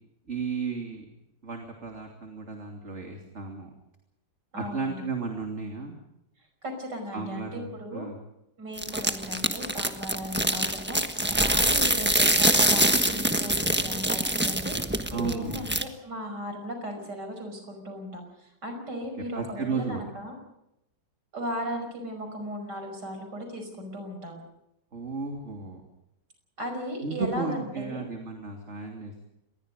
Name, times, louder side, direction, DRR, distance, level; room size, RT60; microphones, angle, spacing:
voice 1, 0.3-1.0 1.4-3.7 4.5-6.0 7.1-8.2 15.1-15.7 19.3-20.1 24.9-25.8 27.0-29.3, right 4 dB, 40° right, 2 dB, 3.2 m, -34 dB
voice 2, 4.5-5.0 6.6-8.1 8.6-20.4 21.3-24.4 26.6-28.0, equal, 65° right, 5 dB, 6.1 m, -36 dB
sound 1, 8.8-15.8, right 1 dB, 5° right, 1.2 m, -24 dB
27.0 x 21.0 x 5.2 m, 0.85 s
omnidirectional pair, 1.9 m